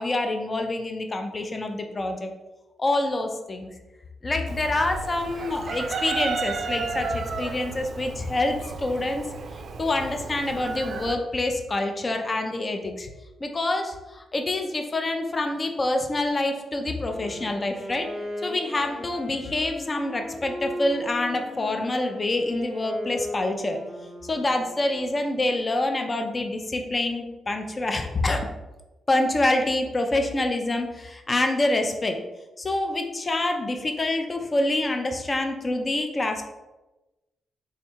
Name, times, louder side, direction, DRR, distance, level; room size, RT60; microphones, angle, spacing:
voice 1, 0.0-2.3 2.8-3.7 4.2-9.3 9.8-13.1 13.4-18.1 18.4-23.8 24.2-28.5 29.1-32.2 32.6-36.4, left 2 dB, 30° left, 5 dB, 0.4 m, -26 dB
Chicken rooster, 4.5-11.2, right 5 dB, 60° right, 0.3 m, -33 dB
Wind instrument woodwind instrument, 17.0-25.1, left 1 dB, 10° left, 0.8 m, -37 dB
3.6 x 2.2 x 4.3 m, 1.1 s
cardioid pair, 105°, 0 cm